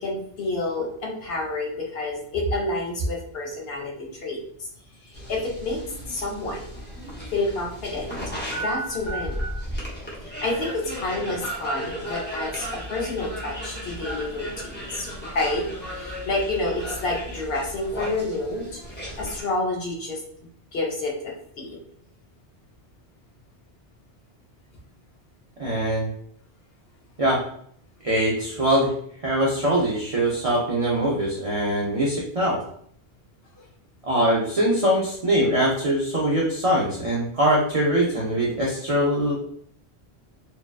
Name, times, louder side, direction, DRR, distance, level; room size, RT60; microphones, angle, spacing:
voice 1, 0.0-4.4 5.0-5.8 6.1-6.7 7.3-8.2 8.5-9.4 10.2-15.7 15.9-20.2 20.7-21.8 33.6-33.7, left 2 dB, 65° left, -1 dB, 0.8 m, -29 dB
sound 1, 5.1-19.4, equal, 15° left, 0.5 m, -35 dB
voice 2, 25.6-26.1 27.2-27.4 28.0-28.9 29.2-32.6 34.1-39.3, right 1 dB, 55° right, -5 dB, 0.4 m, -22 dB
2.6 x 2.1 x 2.3 m, 0.64 s
omnidirectional pair, 1.1 m